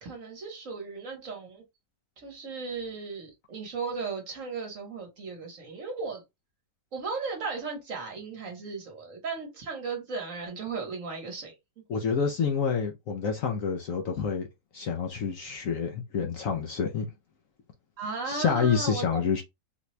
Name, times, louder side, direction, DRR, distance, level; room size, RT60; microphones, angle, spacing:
voice 1, 0.0-1.6 2.2-6.2 6.9-11.8 18.0-19.2, right 4 dB, 50° right, 1.4 m, -36 dB
voice 2, 11.9-14.5 14.7-17.1 18.3-19.4, left 6 dB, 65° left, 0.9 m, -28 dB
4.2 x 2.2 x 3.0 m
omnidirectional pair, 1.8 m